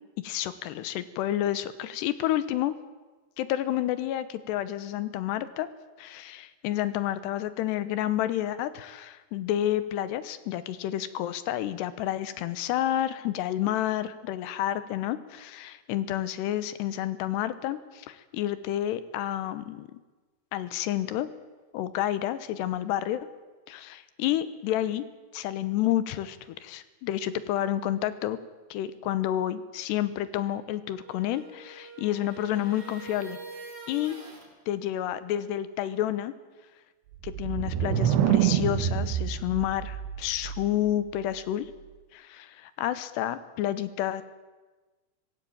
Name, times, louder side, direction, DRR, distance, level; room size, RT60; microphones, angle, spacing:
voice 1, 0.2-2.7 3.4-5.7 6.0-20.0 20.5-21.3 21.7-23.3 23.7-25.0 25.3-28.4 28.7-33.4 33.9-34.2 34.7-36.3 37.2-41.7 42.1-44.2, left 12 dB, 85° left, 14 dB, 3.1 m, -30 dB
sound 1, 30.9-34.5, right 3 dB, 40° right, 5.9 m, -45 dB
sound 2, 37.1-40.9, right 10 dB, 85° right, 3.3 m, -27 dB
25.5 x 16.0 x 8.7 m, 1.3 s
omnidirectional pair, 4.8 m